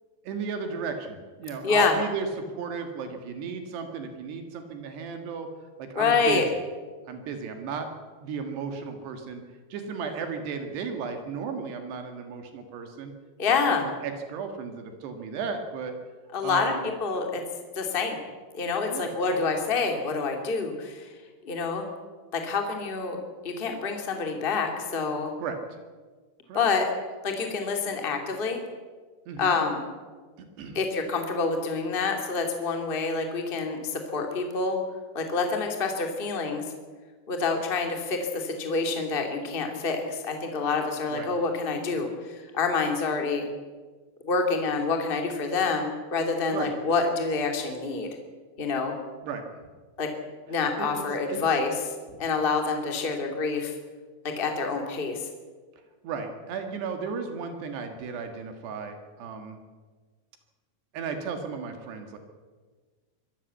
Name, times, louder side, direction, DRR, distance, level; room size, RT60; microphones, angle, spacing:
voice 1, 0.3-5.5 5.8-6.4 7.1-7.9 8.2-9.4 9.7-13.1 13.7-16.0 16.4-16.9 18.9-19.4 25.4-25.6 26.5-26.6 29.3-29.6 30.6-30.8 41.1-41.3 46.5-46.7 49.2-49.4 50.8-51.0 51.3-51.4 56.0-59.6 60.9-62.2, right 5 dB, 70° right, 6 dB, 3.6 m, -34 dB
voice 2, 1.6-1.9 5.9-6.4 13.4-13.8 16.3-16.7 17.0-17.4 17.7-18.2 18.5-21.1 21.4-21.9 22.3-23.2 23.4-25.3 26.5-26.9 27.2-28.6 29.4-29.8 30.7-34.8 35.1-36.6 37.3-43.5 44.2-48.1 48.6-48.9 50.0-50.1 50.5-51.7 52.2-53.7 54.2-55.3, left 4 dB, 20° left, 3 dB, 1.5 m, -27 dB
23.5 x 13.5 x 8.2 m, 1.4 s
omnidirectional pair, 5.3 m